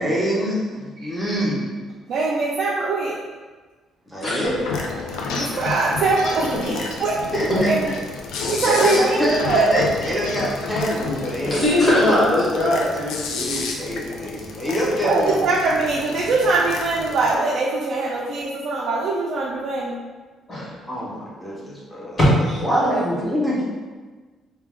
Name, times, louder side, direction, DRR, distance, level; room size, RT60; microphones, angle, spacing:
voice 1, 0.0-1.6 4.1-4.6 6.5-6.8 7.3-8.0 8.6-11.7 13.8-15.4 20.9-22.2 22.6-23.6, equal, ahead, -7 dB, 0.6 m, -25 dB
voice 2, 2.1-3.2 5.3-7.2 7.5-7.9 8.5-9.8 15.0-20.0 22.7-23.3, right 3 dB, 60° right, -3 dB, 0.3 m, -22 dB
voice 3, 4.2-4.7 7.5-7.6 11.4-13.6 14.1-14.2 14.6-14.9 20.5-20.7 22.2-22.6, left 1 dB, 35° left, -7 dB, 1.1 m, -20 dB
sound 1, 4.4-17.3, left 4 dB, 90° left, 0.3 m, -31 dB
2.2 x 2.2 x 3.4 m, 1.3 s
cardioid pair, 145°, 0 cm